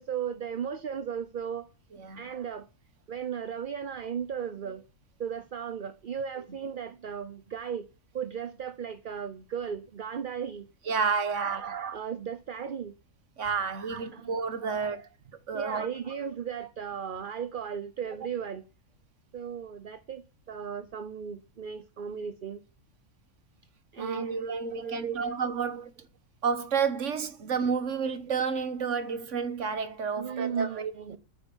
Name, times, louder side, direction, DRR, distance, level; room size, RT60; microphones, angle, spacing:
voice 1, 0.0-1.7 2.2-2.7 3.1-4.8 5.2-7.9 8.1-10.7 11.3-13.0 13.7-14.3 14.6-15.0 15.5-18.6 19.3-22.6 23.9-25.3 30.2-31.2, right 7 dB, 45° right, 0.8 m, -36 dB
voice 2, 1.9-2.2 6.4-6.5 10.9-11.6 13.4-15.0 15.5-15.9 24.0-25.9 26.4-31.2, right 5 dB, 60° right, 1.5 m, -30 dB
9.7 x 9.1 x 7.1 m
omnidirectional pair, 1.5 m